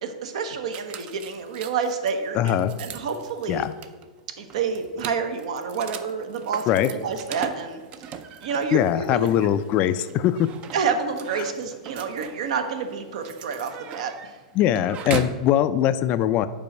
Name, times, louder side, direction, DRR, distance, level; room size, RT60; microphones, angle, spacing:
voice 1, 0.0-3.6 4.4-7.8 8.4-9.3 10.7-14.1, right 5 dB, 70° right, 7 dB, 0.8 m, -28 dB
sound 1, 0.7-15.5, right 7 dB, 35° right, 0.4 m, -39 dB
voice 2, 2.3-2.7 3.5-3.7 6.7-6.9 8.7-10.5 11.4-11.5 14.5-16.5, left 11 dB, 40° left, 13 dB, 0.3 m, -21 dB
5.3 x 4.3 x 5.9 m, 1.3 s
hypercardioid pair, 120°, 4 cm